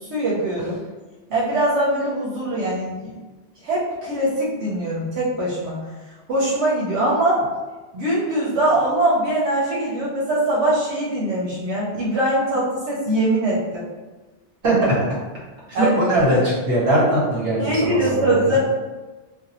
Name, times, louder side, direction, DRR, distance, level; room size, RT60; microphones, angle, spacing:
voice 1, 0.1-0.8 1.3-3.2 3.6-5.8 6.3-7.5 7.9-13.9 15.7-16.0 17.6-18.6, right 1 dB, 85° right, -6 dB, 0.9 m, -22 dB
voice 2, 14.6-15.0 15.7-18.6, right 1 dB, 55° right, -6 dB, 1.2 m, -20 dB
2.5 x 2.1 x 2.9 m, 1.2 s
omnidirectional pair, 1.1 m